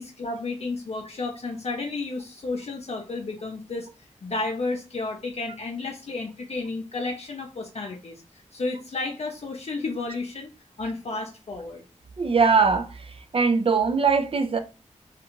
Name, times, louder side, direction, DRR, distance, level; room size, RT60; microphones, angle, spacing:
voice 1, 0.0-3.9 4.2-10.5 10.8-11.8, left 3 dB, 55° left, 0.5 m, -32 dB
voice 2, 12.2-12.9 13.3-14.6, right 5 dB, 45° right, 0.4 m, -21 dB
2.4 x 2.3 x 3.0 m
cardioid pair, 55°, 13 cm